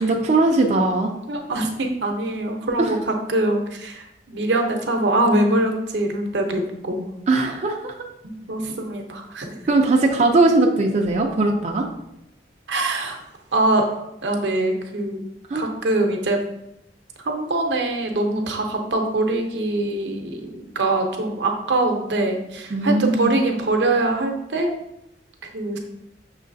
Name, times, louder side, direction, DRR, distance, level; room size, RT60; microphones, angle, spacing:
voice 1, 0.0-1.1 2.8-3.0 7.3-7.9 9.7-11.9 15.5-15.7 22.7-23.4, right 2 dB, 40° right, 1 dB, 0.4 m, -19 dB
voice 2, 1.3-3.0 3.3-7.1 8.2-9.6 12.7-13.2 13.5-13.9 14.2-15.2 15.5-16.4 17.2-24.7 25.4-25.8, right 2 dB, 80° right, 3 dB, 0.7 m, -23 dB
6.4 x 3.1 x 2.6 m, 0.84 s
head